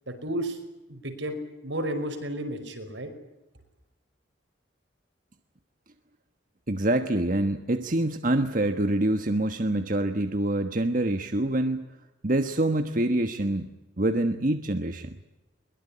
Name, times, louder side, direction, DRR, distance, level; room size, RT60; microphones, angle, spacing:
voice 1, 0.1-0.6 0.9-3.1, right 1 dB, 75° right, 7 dB, 5.4 m, -32 dB
voice 2, 6.7-11.9 12.2-13.7 14.0-15.2, right 1 dB, 45° right, 8 dB, 1.3 m, -26 dB
22.5 x 22.5 x 9.8 m, 0.99 s
head